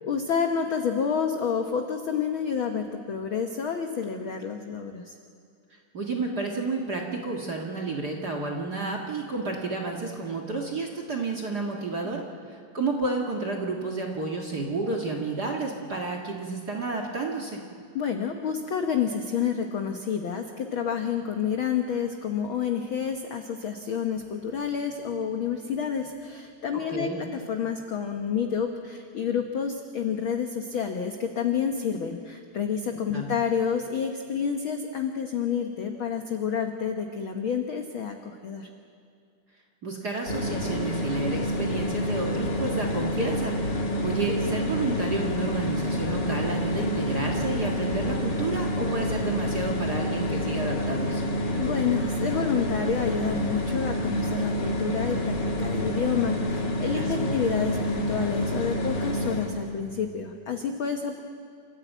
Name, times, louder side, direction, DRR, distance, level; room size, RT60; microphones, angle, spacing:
voice 1, 0.0-5.2 12.0-12.1 17.9-38.7 51.5-61.2, left 7 dB, 70° left, 5 dB, 1.2 m, -29 dB
voice 2, 5.9-17.6 26.7-27.3 33.1-33.3 39.8-51.3 56.9-57.4, right 3 dB, 40° right, 0 dB, 1.6 m, -31 dB
sound 1, 40.3-59.6, equal, 35° left, 2.4 m, -28 dB
28.0 x 14.0 x 9.2 m, 2.3 s
omnidirectional pair, 3.8 m